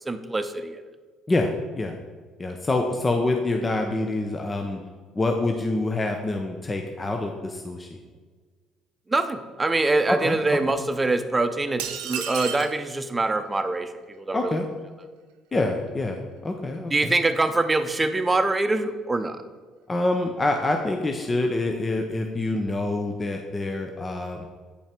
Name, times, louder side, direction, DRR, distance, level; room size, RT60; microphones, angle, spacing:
voice 1, 0.1-0.8 9.1-14.6 16.9-19.4, right 2 dB, 20° right, 8 dB, 0.8 m, -24 dB
voice 2, 1.3-1.9 2.4-4.8 5.1-7.9 10.1-10.6 14.3-14.7 15.5-17.2 19.9-24.5, left 2 dB, 25° left, 3 dB, 0.8 m, -26 dB
sound 1, 11.8-12.8, right 9 dB, 85° right, 0.7 m, -31 dB
8.4 x 5.6 x 4.5 m, 1.4 s
supercardioid pair, 70°, 0 cm